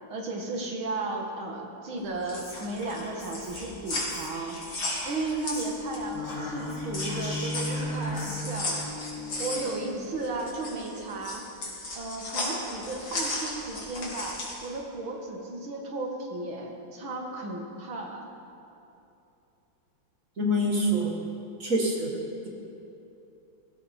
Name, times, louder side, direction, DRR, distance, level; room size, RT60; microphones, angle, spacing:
voice 1, 0.1-4.6 5.0-8.9 9.4-11.4 11.9-18.3, right 3 dB, 85° right, 0 dB, 2.6 m, -34 dB
sound 1, 2.0-6.2 6.5-14.7, left 2 dB, 70° left, 3.5 m, -35 dB
Whispering, 2.4-5.9 6.2-8.4, left 1 dB, 35° left, 3.3 m, -41 dB
sound 2, 5.1-11.5, left 2 dB, 55° left, 2.9 m, -37 dB
voice 2, 20.4-21.1 21.6-22.2, equal, 45° right, 0 dB, 1.8 m, -25 dB
17.5 x 15.0 x 4.4 m, 2.9 s
omnidirectional pair, 2.2 m